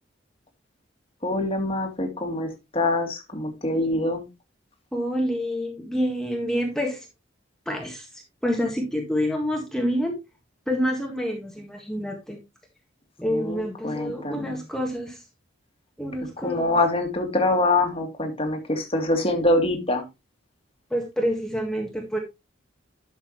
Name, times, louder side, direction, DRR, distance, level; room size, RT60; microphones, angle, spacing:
voice 1, 1.2-4.2 13.3-14.6 16.4-20.0, left 2 dB, 30° left, 3 dB, 2.1 m, -25 dB
voice 2, 4.9-7.1 7.6-10.2 10.7-12.4 13.2-15.2 16.0-16.8 20.9-22.2, equal, 5° left, 1 dB, 1.7 m, -27 dB
11.5 x 6.9 x 3.1 m, 0.24 s
head